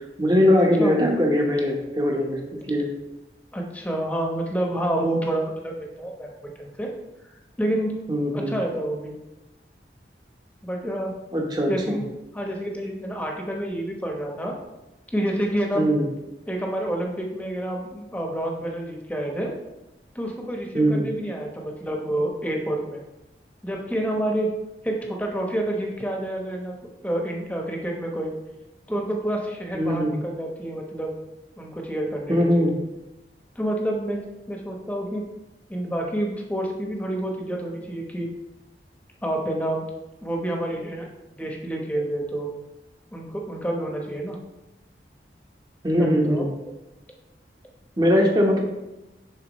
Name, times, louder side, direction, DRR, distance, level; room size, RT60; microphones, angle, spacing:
voice 1, 0.2-2.4 2.7-2.9 8.1-8.6 11.3-12.0 15.7-16.0 20.7-21.1 29.7-30.1 32.3-32.7 45.8-46.5 48.0-48.6, equal, 25° right, 0 dB, 1.0 m, -21 dB
voice 2, 3.5-6.9 7.6-7.9 8.3-9.2 10.6-11.1 11.7-12.0 12.3-14.6 15.1-15.9 16.4-19.5 20.1-23.0 23.6-24.5 24.8-28.3 28.9-31.1 31.6-32.7 33.5-34.2 34.5-35.2 35.7-38.3 39.2-39.8 40.2-41.1 41.4-42.5 43.1-44.4 46.0-46.5, right 1 dB, 10° left, 0 dB, 1.0 m, -28 dB
10.5 x 4.2 x 3.1 m, 1.0 s
head